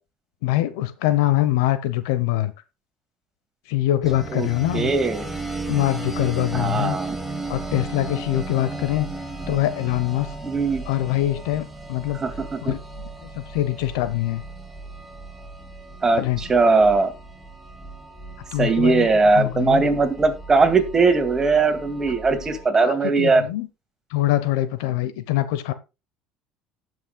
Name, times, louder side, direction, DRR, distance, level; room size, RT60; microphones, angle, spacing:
voice 1, 0.4-2.5 3.7-4.9 5.7-7.0 7.5-9.1 9.5-10.3 10.8-12.2 12.6-12.8 13.2-14.4 16.1-16.4 18.5-19.1 19.3-19.9 22.8-23.7 24.1-25.7, left 14 dB, 80° left, 0.9 m, -23 dB
sound 1, 4.0-22.7, right 3 dB, 10° right, 2.2 m, -35 dB
voice 2, 4.7-5.2 6.5-7.2 10.4-10.8 12.2-12.3 12.6-12.7 16.0-17.1 18.6-23.4, right 3 dB, 25° right, 2.2 m, -19 dB
18.0 x 6.2 x 2.3 m
supercardioid pair, 80°, 2 cm